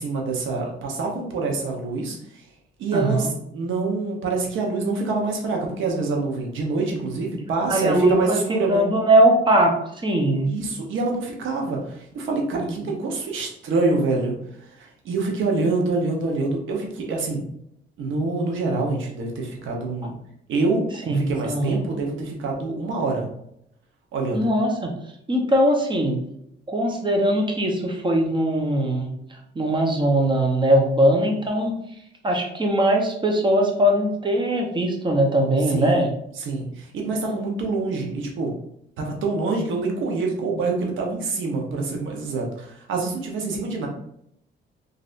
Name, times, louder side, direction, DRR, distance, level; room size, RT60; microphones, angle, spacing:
voice 1, 0.0-2.4 2.8-8.8 10.5-14.4 14.6-17.5 18.0-20.1 20.5-23.3 24.1-24.4 35.7-36.0 36.4-38.5 39.0-43.9, right 3 dB, 75° right, 1 dB, 0.9 m, -26 dB
voice 2, 2.9-3.3 7.7-10.5 12.5-12.8 21.1-21.8 24.3-24.9 25.3-26.2 26.7-31.8 32.2-36.1, right 1 dB, 25° right, 1 dB, 0.8 m, -21 dB
3.2 x 2.5 x 2.5 m, 0.74 s
cardioid pair, 90°, 20 cm